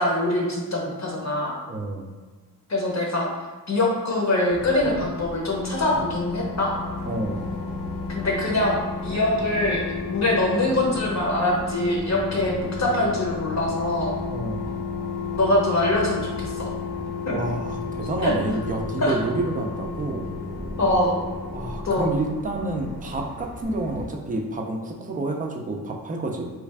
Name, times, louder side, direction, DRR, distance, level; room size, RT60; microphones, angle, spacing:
voice 1, 0.0-1.6 2.7-3.3 3.7-6.7 8.1-12.5 12.8-14.1 15.4-16.7 17.3-17.4 18.2-18.3 19.0-19.2 20.8-21.2 21.8-22.1, left 1 dB, 45° left, -2 dB, 0.8 m, -23 dB
voice 2, 1.7-2.1 7.0-7.5 14.3-14.7 17.3-20.3 21.5-26.5, right 2 dB, 20° right, 2 dB, 0.4 m, -29 dB
sound 1, 4.5-24.1, equal, 70° left, 0.9 m, -39 dB
sound 2, 5.1-23.3 23.6-23.7, left 5 dB, 90° left, 0.6 m, -33 dB
3.2 x 2.4 x 3.4 m, 1.4 s
wide cardioid pair, 110°, 39 cm